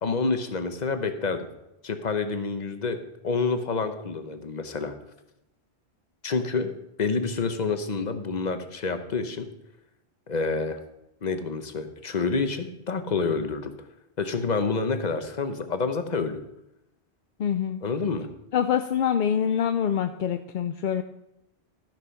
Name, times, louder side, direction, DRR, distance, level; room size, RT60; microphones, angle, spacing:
voice 1, 0.0-1.5 1.8-3.0 3.2-4.9 6.2-6.7 7.0-9.5 10.3-10.8 11.2-13.7 14.2-16.4 17.8-18.3, left 4 dB, 45° left, 8 dB, 1.0 m, -28 dB
voice 2, 17.4-17.8 18.5-21.0, left 8 dB, 60° left, 8 dB, 0.6 m, -25 dB
14.0 x 6.0 x 5.7 m, 0.88 s
omnidirectional pair, 1.1 m